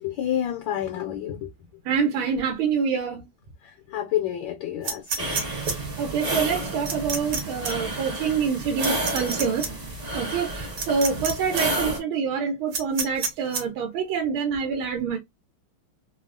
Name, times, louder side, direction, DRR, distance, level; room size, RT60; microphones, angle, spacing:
voice 1, 0.0-1.5 3.6-5.5, left 11 dB, 75° left, 1.2 m, -29 dB
voice 2, 1.9-3.3 6.0-9.7 10.1-15.2, right 6 dB, 90° right, 1.5 m, -26 dB
sound 1, 4.8-5.7 6.9-7.4 7.6-7.7 8.8-9.7 10.8-11.3 11.6-11.7 12.7-13.6, right 5 dB, 60° right, 1.5 m, -28 dB
sound 2, 5.2-12.0, right 1 dB, 30° right, 0.9 m, -30 dB
3.4 x 2.0 x 2.4 m
omnidirectional pair, 2.2 m